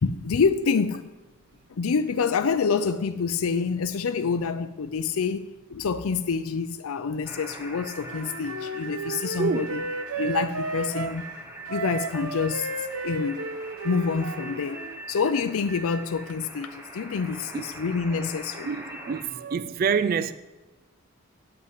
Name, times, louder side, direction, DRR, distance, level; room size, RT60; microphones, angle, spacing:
voice 1, 0.0-1.1 1.7-9.8 10.2-11.2 11.7-13.5 13.8-18.7, left 5 dB, 75° left, 0.5 m, -27 dB
sound 1, 7.3-19.2, right 2 dB, 10° right, 1.1 m, -42 dB
Wind instrument woodwind instrument, 8.0-11.2 11.7-15.0, right 3 dB, 80° right, 0.8 m, -34 dB
voice 2, 9.4-9.8 17.5-17.6 18.7-20.3, right 5 dB, 40° right, 0.3 m, -27 dB
9.5 x 5.5 x 7.6 m
head